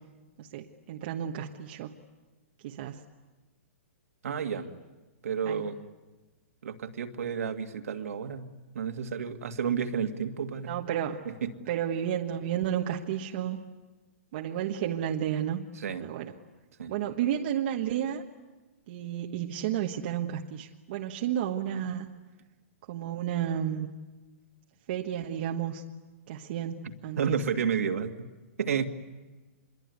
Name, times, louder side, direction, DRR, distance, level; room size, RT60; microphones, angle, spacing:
voice 1, 0.4-1.9 2.6-3.0 4.3-4.4 5.5-5.6 10.7-11.2 11.7-13.6 14.3-15.6 16.0-16.3 16.9-18.2 18.9-22.1 22.9-23.9 24.9-25.8 26.3-27.4, right 10 dB, 45° right, 2 dB, 1.3 m, -32 dB
voice 2, 4.2-4.7 5.2-5.8 6.6-8.5 8.7-10.8 11.3-11.5 15.8-16.0 16.8-16.9 27.2-28.1 28.6-28.9, right 7 dB, 80° right, 5 dB, 2.2 m, -31 dB
26.5 x 22.5 x 9.5 m, 1.2 s
hypercardioid pair, 155°, 8 cm